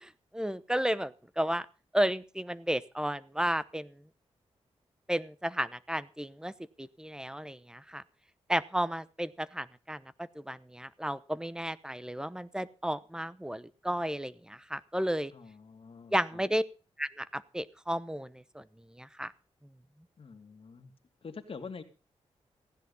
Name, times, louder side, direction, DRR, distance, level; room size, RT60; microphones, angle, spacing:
voice 1, 0.0-1.7 1.9-3.9 5.1-6.5 6.8-8.0 8.5-10.0 10.4-15.3 16.1-16.6 17.0-18.6 19.0-19.3, equal, 5° right, 16 dB, 0.9 m, -33 dB
voice 2, 15.3-16.5 20.2-20.9 21.2-21.8, left 5 dB, 55° left, 7 dB, 2.4 m, -46 dB
16.0 x 10.5 x 5.5 m, 0.35 s
cardioid pair, 75°, 11 cm